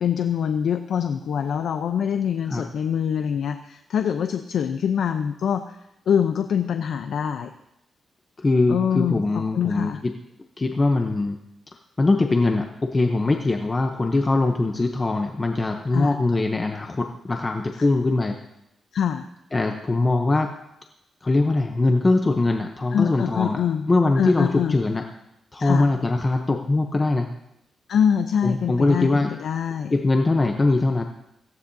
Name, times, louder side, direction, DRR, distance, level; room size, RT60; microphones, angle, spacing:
voice 1, 0.0-5.8 6.1-7.5 8.7-10.0 15.9-16.1 18.9-19.3 22.9-23.9 24.2-24.8 25.6-25.9 27.9-29.9, left 8 dB, 75° left, 7 dB, 0.6 m, -24 dB
voice 2, 8.4-10.1 10.6-11.4 12.0-18.4 19.5-20.6 21.2-23.6 23.9-25.1 25.5-27.3 28.4-29.4 29.9-31.0, left 2 dB, 25° left, 4 dB, 0.8 m, -22 dB
17.5 x 15.5 x 2.7 m, 0.82 s
wide cardioid pair, 130°, 0 cm